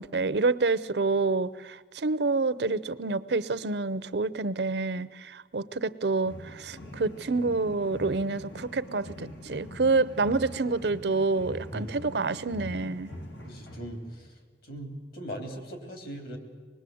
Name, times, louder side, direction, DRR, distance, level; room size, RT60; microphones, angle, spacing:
voice 1, 0.0-13.1, right 3 dB, 65° right, 17 dB, 0.7 m, -28 dB
sound 1, 6.2-14.3, left 1 dB, 85° left, 3.8 m, -43 dB
voice 2, 13.4-14.3 14.6-16.4, right 1 dB, 55° left, 5 dB, 3.3 m, -39 dB
25.0 x 20.5 x 7.8 m, 1.5 s
head